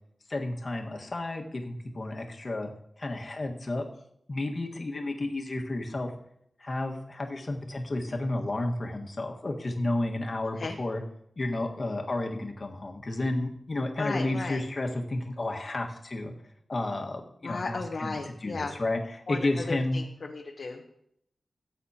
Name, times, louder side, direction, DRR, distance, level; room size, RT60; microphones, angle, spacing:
voice 1, 0.3-2.7 3.0-3.8 4.3-6.1 6.6-11.0 11.4-16.3 16.7-18.1 18.4-19.0 19.3-20.0, left 2 dB, 45° left, 1 dB, 1.6 m, -31 dB
voice 2, 14.0-14.6 17.4-18.8 19.3-21.0, left 3 dB, 70° left, 1 dB, 1.0 m, -35 dB
17.5 x 8.2 x 2.9 m, 0.73 s
wide cardioid pair, 80°, 0 cm